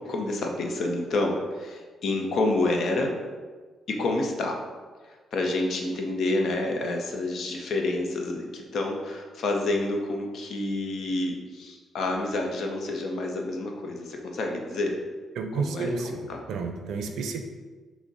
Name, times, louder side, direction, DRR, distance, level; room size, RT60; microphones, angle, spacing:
voice 1, 0.0-3.2 3.9-4.6 5.0-15.0 15.6-16.4, left 2 dB, 55° left, 2 dB, 0.6 m, -28 dB
voice 2, 15.4-16.1 16.5-17.4, right 4 dB, 75° right, 4 dB, 0.5 m, -30 dB
5.9 x 2.1 x 3.9 m, 1.4 s
cardioid pair, 170°, 0 cm